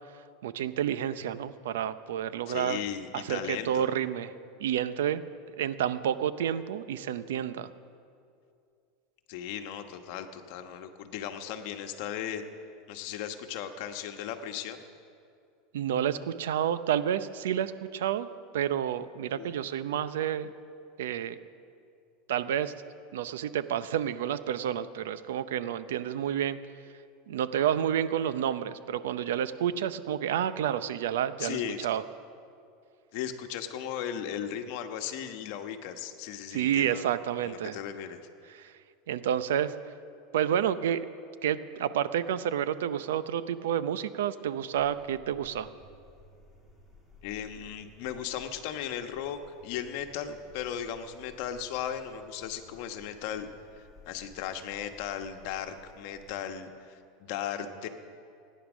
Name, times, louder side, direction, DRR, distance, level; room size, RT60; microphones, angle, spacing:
voice 1, 0.4-2.8 3.1-4.3 4.6-5.2 5.6-7.7 15.7-18.3 18.5-20.5 21.0-21.4 22.3-22.7 23.1-26.6 27.3-32.0 36.5-37.8 38.5-38.7 39.1-39.7 40.3-41.1 41.4-45.7, right 10 dB, 90° right, 14 dB, 0.6 m, -29 dB
voice 2, 2.5-3.9 9.3-12.4 12.9-14.8 19.3-19.5 31.4-31.9 33.1-37.0 37.4-38.2 47.2-53.5 53.7-57.9, left 9 dB, 60° left, 7 dB, 1.2 m, -37 dB
sound 1, 44.7-56.3, left 1 dB, 5° right, 2.6 m, -56 dB
17.5 x 10.0 x 6.2 m, 2.4 s
supercardioid pair, 140°, 0 cm